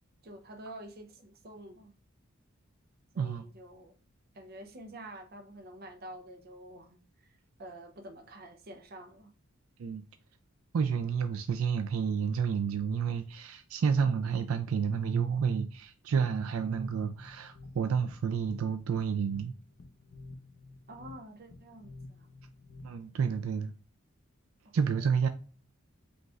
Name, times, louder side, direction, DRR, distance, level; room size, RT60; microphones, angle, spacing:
voice 1, 0.2-1.9 3.1-4.0 4.3-9.3 20.9-22.3 24.6-25.1, right 1 dB, 45° right, 0.7 m, -48 dB
voice 2, 10.7-19.5 22.8-23.7 24.7-25.3, right 6 dB, 80° right, 0.4 m, -30 dB
sound 1, 16.4-23.2, left 2 dB, 60° left, 0.6 m, -51 dB
5.1 x 3.1 x 2.4 m
head